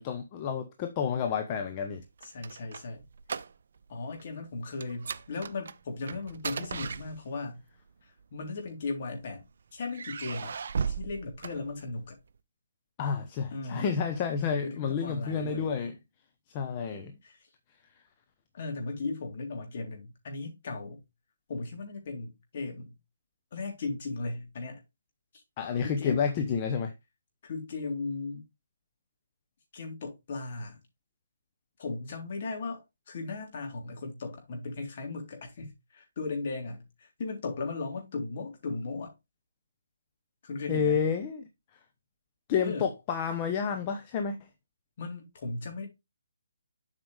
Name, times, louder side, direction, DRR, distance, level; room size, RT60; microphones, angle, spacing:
voice 1, 0.0-2.0 13.0-16.0 16.5-17.1 25.6-26.9 40.7-41.5 42.5-44.4, left 6 dB, 30° left, 1.0 m, -30 dB
sound 1, 2.0-3.9 4.2-4.4 4.8-7.6 8.5-9.3 9.9-12.2, right 6 dB, 60° right, 0.7 m, -37 dB
voice 2, 2.2-3.0 3.9-7.6 8.3-9.4 9.7-10.5 10.9-12.2 13.5-13.9 14.6-15.7 17.2-17.5 18.5-21.0 21.5-22.9 23.5-24.8 25.8-26.3 27.4-28.4 29.7-30.8 31.8-39.1 40.4-41.0 42.6-42.9 45.0-45.9, left 3 dB, 45° left, 3.6 m, -37 dB
7.9 x 5.9 x 3.4 m
figure-of-eight pair, 150°, 0 cm